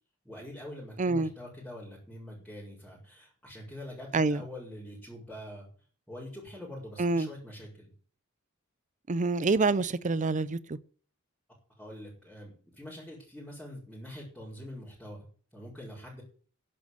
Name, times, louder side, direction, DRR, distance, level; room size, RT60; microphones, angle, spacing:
voice 1, 0.2-5.7 6.1-7.9 11.8-16.2, left 1 dB, 5° left, 5.1 m, -44 dB
voice 2, 1.0-1.3 4.1-4.4 7.0-7.3 9.1-10.8, right 3 dB, 35° right, 0.6 m, -27 dB
10.5 x 8.7 x 8.0 m
head